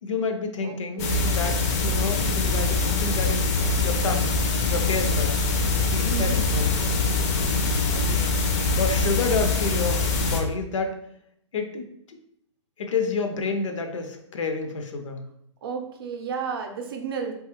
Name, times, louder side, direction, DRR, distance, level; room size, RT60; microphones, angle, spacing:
voice 1, 0.0-1.6 1.8-4.3 4.7-5.4 5.9-6.7 8.7-11.0 11.5-11.9 12.8-15.2, left 4 dB, 80° left, 5 dB, 0.6 m, -29 dB
voice 2, 0.6-1.6 6.0-6.7 7.9-8.2 15.6-17.3, right 6 dB, 50° right, 4 dB, 0.5 m, -33 dB
sound 1, 1.0-10.4, left 3 dB, 30° left, 0.4 m, -23 dB
3.2 x 2.3 x 2.9 m, 0.72 s
hypercardioid pair, 155°, 16 cm